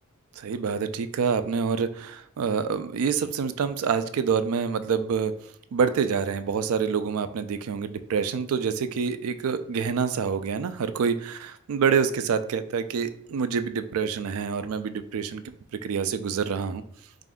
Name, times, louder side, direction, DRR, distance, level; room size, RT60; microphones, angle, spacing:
voice 1, 0.4-5.3 5.7-15.4 15.8-16.8, right 6 dB, 80° right, 11 dB, 0.4 m, -27 dB
4.1 x 2.5 x 3.6 m, 0.64 s
head